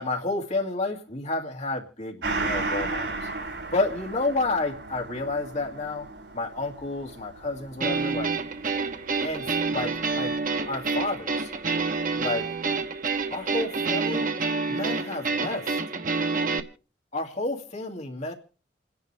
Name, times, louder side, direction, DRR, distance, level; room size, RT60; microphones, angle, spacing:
voice 1, 0.0-3.3 3.7-6.1 6.3-8.3 9.2-10.3 10.6-11.5 12.2-12.5 13.3-14.3 14.7-15.8 17.1-18.3, left 2 dB, 40° left, 1 dB, 2.4 m, -30 dB
Gong, 2.2-11.2 11.5-11.6, right 3 dB, 80° right, 5.9 m, -36 dB
sound 1, 7.8-16.6, right 4 dB, 50° right, 1.0 m, -28 dB
28.0 x 10.5 x 3.4 m, 0.37 s
head